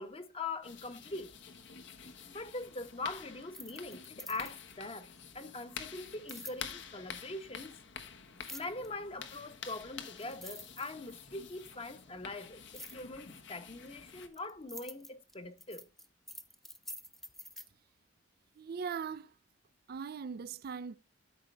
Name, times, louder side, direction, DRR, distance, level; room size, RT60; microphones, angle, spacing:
voice 1, 0.0-1.3 2.3-5.1 5.3-7.8 8.5-15.9, left 2 dB, 30° left, 1.0 m, -42 dB
sound 1, 0.6-14.3, left 7 dB, 65° left, 1.2 m, -49 dB
sound 2, 3.4-4.8 6.3-6.6 8.4-8.9 9.8-9.9 10.2-11.3 12.7-13.0 13.9-17.7, equal, ahead, 0.6 m, -47 dB
voice 2, 18.6-19.3 19.9-21.0, right 6 dB, 50° right, 0.4 m, -40 dB
12.5 x 5.2 x 3.2 m
head